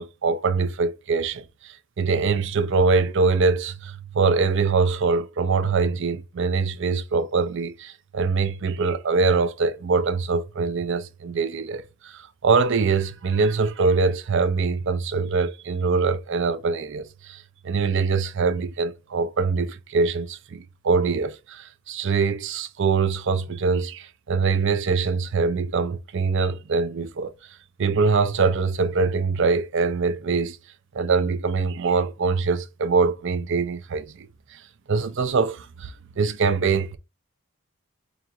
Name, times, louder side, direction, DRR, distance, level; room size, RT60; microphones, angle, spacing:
voice 1, 0.0-27.3 27.8-30.6 30.9-34.6 34.9-37.0, right 4 dB, 55° right, 0.5 m, -23 dB
4.9 x 2.4 x 2.7 m
head